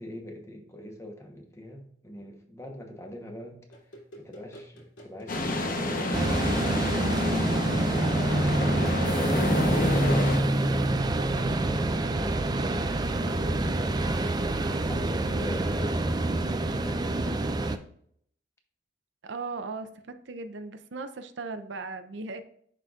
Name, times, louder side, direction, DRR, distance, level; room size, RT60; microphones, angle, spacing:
voice 1, 0.0-8.1 8.5-10.1 10.6-14.1 14.9-16.1 16.7-17.6, left 1 dB, 15° left, 2 dB, 1.0 m, -43 dB
sound 1, 3.7-9.4, right 1 dB, 85° left, 2.7 m, -48 dB
sound 2, 5.3-10.4, left 2 dB, 50° left, 0.9 m, -29 dB
sound 3, 6.1-17.8, right 2 dB, 20° right, 0.4 m, -26 dB
voice 2, 19.2-22.4, right 3 dB, 70° right, 9 dB, 0.6 m, -38 dB
10.5 x 4.0 x 2.4 m, 0.64 s
head